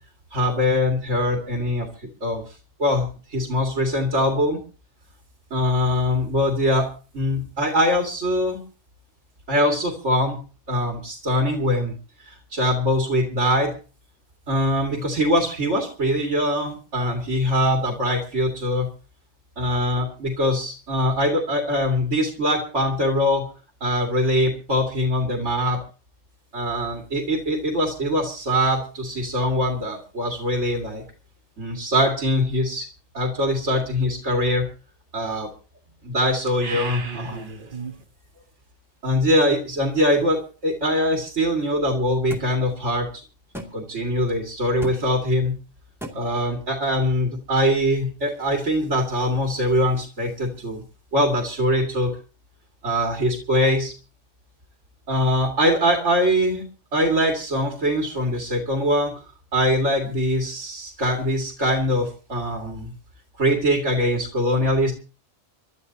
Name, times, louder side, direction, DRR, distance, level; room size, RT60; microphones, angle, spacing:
voice 1, 0.3-1.9 2.2-2.4 2.8-4.6 5.5-6.9 7.1-8.6 9.5-10.4 10.7-12.0 12.3-13.7 14.5-18.9 19.6-23.5 23.8-25.8 26.5-31.0 31.6-32.9 33.1-34.7 35.1-35.5 36.0-37.5 39.0-43.1 43.7-45.6 46.1-50.8 51.1-52.1 52.8-53.9 55.1-56.6 56.9-59.1 59.5-62.9 63.4-64.9, equal, 70° right, 1 dB, 2.5 m, -22 dB
sound 1, 36.5-38.0, right 5 dB, 45° right, 1.3 m, -34 dB
sound 2, 42.3-42.5 43.5-43.7 44.8-45.0 46.0-46.2, right 1 dB, ahead, 2.3 m, -33 dB
28.0 x 12.5 x 2.8 m, 0.36 s
omnidirectional pair, 1.3 m